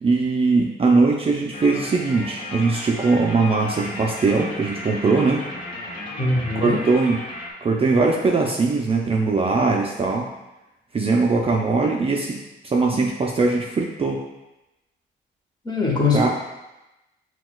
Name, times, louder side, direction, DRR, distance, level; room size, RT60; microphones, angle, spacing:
voice 1, 0.0-5.4 6.6-7.2 7.6-10.3 10.9-12.4 12.6-14.2 16.1-16.3, right 3 dB, 30° right, -1 dB, 0.4 m, -20 dB
sound 1, 1.5-7.5, left 1 dB, 45° left, 1.3 m, -34 dB
voice 2, 6.2-6.8 15.6-16.3, left 3 dB, 20° left, -2 dB, 1.0 m, -21 dB
5.8 x 2.3 x 2.2 m, 0.98 s
cardioid pair, 90°, 20 cm